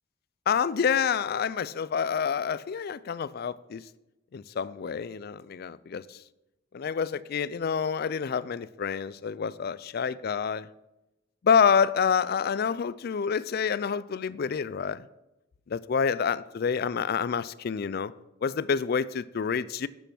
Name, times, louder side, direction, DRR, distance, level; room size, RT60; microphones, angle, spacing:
voice 1, 0.5-3.8 4.3-6.2 6.7-10.7 11.4-15.0 15.7-18.1 18.4-19.9, left 6 dB, 50° left, 18 dB, 0.4 m, -27 dB
8.3 x 6.6 x 6.2 m, 0.95 s
head